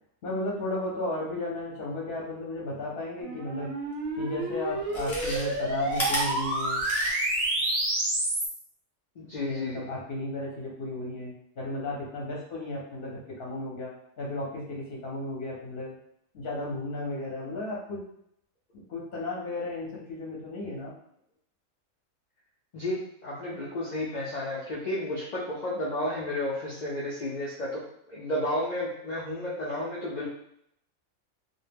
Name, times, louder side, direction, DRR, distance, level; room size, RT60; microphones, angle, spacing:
voice 1, 0.2-3.7 4.2-6.9 9.5-15.9 16.3-18.0 18.7-20.9, left 2 dB, 55° left, -4 dB, 0.7 m, -34 dB
sound 1, 3.2-8.5, right 2 dB, 50° right, 0.7 m, -29 dB
Chewing mastication, 4.0-4.1 4.8-7.4 7.8-7.9, equal, 15° left, 0.5 m, -33 dB
voice 2, 9.2-9.9 22.7-30.3, left 1 dB, 85° left, -7 dB, 0.4 m, -32 dB
2.1 x 2.1 x 3.3 m, 0.73 s
omnidirectional pair, 1.4 m